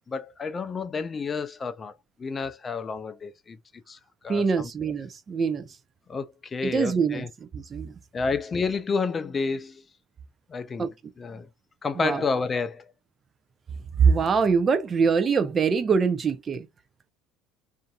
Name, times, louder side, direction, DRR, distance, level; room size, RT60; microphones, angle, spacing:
voice 1, 0.1-1.9 2.2-3.6 3.9-4.0 4.2-4.7 6.1-7.3 8.1-9.8 10.5-10.9 11.2-11.5 11.8-12.9, left 4 dB, 30° left, 0.4 m, -30 dB
voice 2, 4.3-5.7 6.6-7.9 10.8-10.9 12.0-12.2 14.0-16.7, right 5 dB, 35° right, 0.5 m, -24 dB
2.6 x 2.5 x 2.2 m
hypercardioid pair, 70°, 0 cm